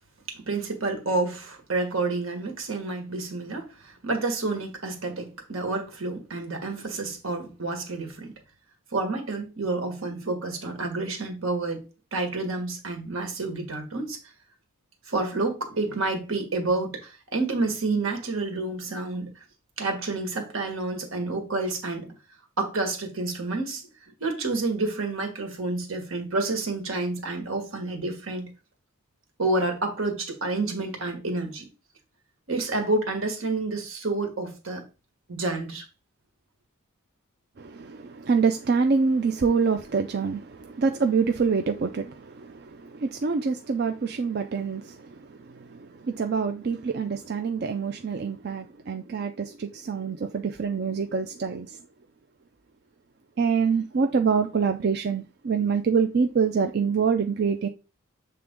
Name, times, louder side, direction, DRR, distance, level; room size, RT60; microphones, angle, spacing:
voice 1, 0.3-8.3 8.9-11.8 12.1-14.2 15.1-19.4 19.8-22.1 22.6-23.8 24.2-28.5 29.4-31.7 32.5-34.8 35.3-35.8, right 3 dB, 80° right, 1.6 m, -29 dB
voice 2, 37.6-51.8 53.4-57.7, right 5 dB, 50° right, 0.4 m, -26 dB
7.5 x 3.4 x 3.7 m
head